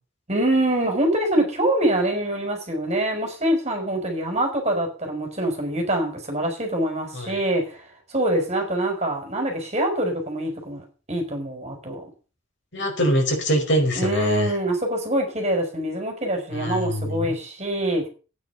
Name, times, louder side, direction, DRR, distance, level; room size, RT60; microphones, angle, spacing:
voice 1, 0.3-12.1 13.9-18.1, right 1 dB, 35° right, 4.5 m, -25 dB
voice 2, 12.7-14.5 16.5-17.3, equal, 65° left, 5.0 m, -23 dB
13.5 x 9.4 x 5.5 m
head